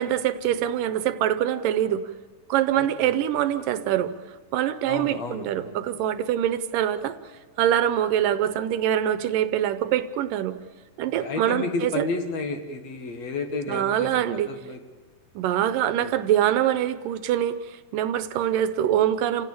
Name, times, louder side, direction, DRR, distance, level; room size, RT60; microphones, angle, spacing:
voice 1, 0.0-2.1 2.5-4.1 4.5-7.2 7.6-10.6 11.0-12.1 13.7-14.5 15.4-19.5, right 11 dB, 75° right, 12 dB, 2.4 m, -24 dB
voice 2, 2.8-3.1 4.8-5.8 11.2-14.8 16.0-16.1, left 3 dB, 55° left, 6 dB, 2.4 m, -32 dB
28.5 x 16.0 x 8.6 m, 1.4 s
omnidirectional pair, 4.1 m